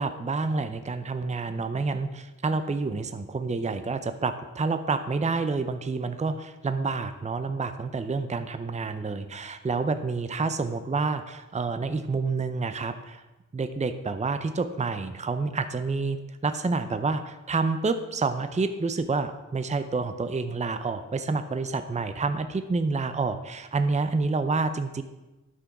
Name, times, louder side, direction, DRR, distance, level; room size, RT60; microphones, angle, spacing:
voice 1, 0.0-13.2 13.5-25.0, right 4 dB, 25° right, 9 dB, 0.5 m, -28 dB
9.9 x 6.0 x 5.9 m, 1.1 s
wide cardioid pair, 105°, 31 cm